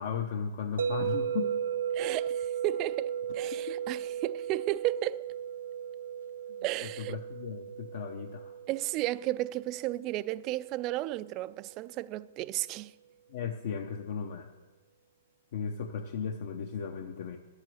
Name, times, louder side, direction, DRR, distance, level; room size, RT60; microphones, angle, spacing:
voice 1, 0.0-1.5 3.7-3.8 6.8-8.5 13.3-14.5 15.5-17.4, left 6 dB, 60° left, 0.8 m, -36 dB
sound 1, 0.8-10.9, right 8 dB, 85° right, 0.7 m, -36 dB
voice 2, 1.9-5.2 6.6-7.2 8.7-12.9, right 16 dB, 30° right, 0.3 m, -33 dB
11.0 x 8.2 x 7.7 m
hypercardioid pair, 160°, 0 cm